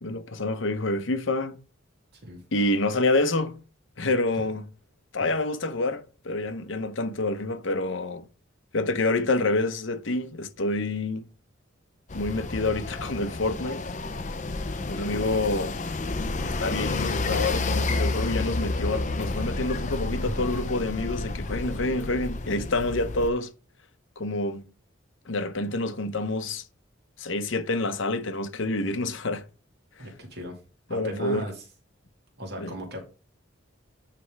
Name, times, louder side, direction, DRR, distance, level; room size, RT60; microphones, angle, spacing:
voice 1, 0.0-1.6 2.5-3.6 4.0-4.6 5.1-8.2 8.7-11.3 12.1-13.8 14.9-15.8 16.4-23.5 24.2-24.6 25.3-26.6 27.2-29.4 30.9-31.5 32.6-32.7, left 2 dB, 70° left, 0.9 m, -27 dB
sound 1, 12.1-23.3, left 3 dB, 35° left, 0.6 m, -30 dB
voice 2, 30.0-30.6 30.9-31.6 32.4-33.0, right 1 dB, 55° right, 2.2 m, -37 dB
9.5 x 3.5 x 4.7 m
head